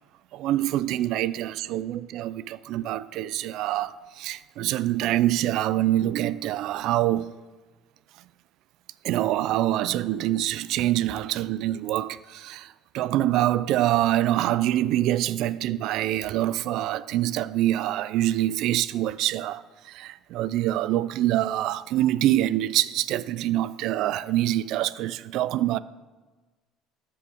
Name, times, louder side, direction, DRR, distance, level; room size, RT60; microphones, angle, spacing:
voice 1, 0.3-7.3 9.0-12.7 12.9-19.6 19.9-25.8, right 14 dB, 70° right, 0.3 m, -25 dB
13.5 x 6.9 x 3.6 m
supercardioid pair, 95°, 0 cm